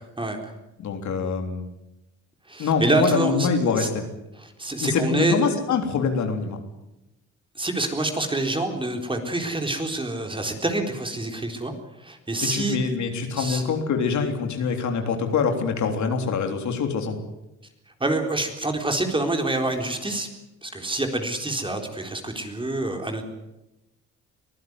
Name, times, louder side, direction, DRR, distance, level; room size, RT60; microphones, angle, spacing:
voice 1, 0.8-1.7 2.6-4.0 4.8-6.6 12.5-17.2, left 5 dB, 70° left, 5 dB, 3.5 m, -24 dB
voice 2, 2.5-3.9 4.4-5.4 7.6-11.7 12.0-12.9 13.4-13.6 18.0-20.3 20.6-23.2, right 2 dB, 15° right, 4 dB, 4.0 m, -26 dB
23.5 x 15.0 x 9.7 m, 0.94 s
cardioid pair, 90°, 30 cm